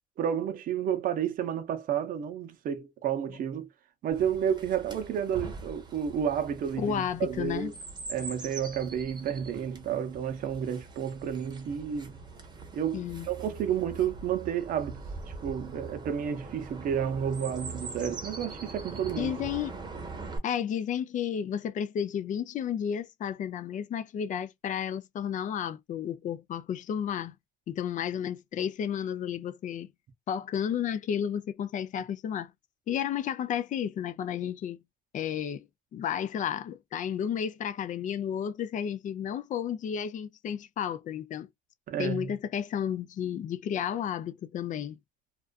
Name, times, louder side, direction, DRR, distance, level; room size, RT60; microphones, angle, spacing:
voice 1, 0.2-3.7 4.0-7.7 8.1-12.2 12.7-15.0 15.4-19.3 41.9-42.3, right 8 dB, 55° right, 0.6 m, -31 dB
Chirp tweet, 4.1-20.4, right 3 dB, 25° right, 0.8 m, -43 dB
voice 2, 6.8-7.7 12.9-13.3 19.2-19.7 20.4-27.3 27.7-29.9 30.3-32.5 32.9-34.8 35.1-35.7 35.9-41.5 42.0-45.0, left 9 dB, 50° left, 0.4 m, -32 dB
2.4 x 2.3 x 2.3 m
cardioid pair, 110°, 17 cm